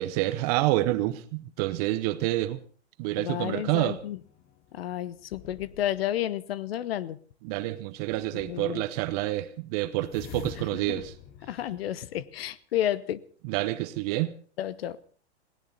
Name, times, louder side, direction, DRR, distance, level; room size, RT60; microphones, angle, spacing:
voice 1, 0.0-2.6 3.0-4.0 7.4-11.1 13.4-14.3, right 16 dB, 35° right, 0.9 m, -28 dB
voice 2, 3.2-4.2 4.7-7.2 8.3-8.8 10.9-11.0 11.4-13.2 14.6-15.0, left 12 dB, 60° left, 1.0 m, -31 dB
sound 1, 3.7-6.2 8.1-8.8 10.1-12.5, left 9 dB, 25° left, 1.1 m, -47 dB
20.0 x 17.5 x 4.1 m
hypercardioid pair, 140°, 34 cm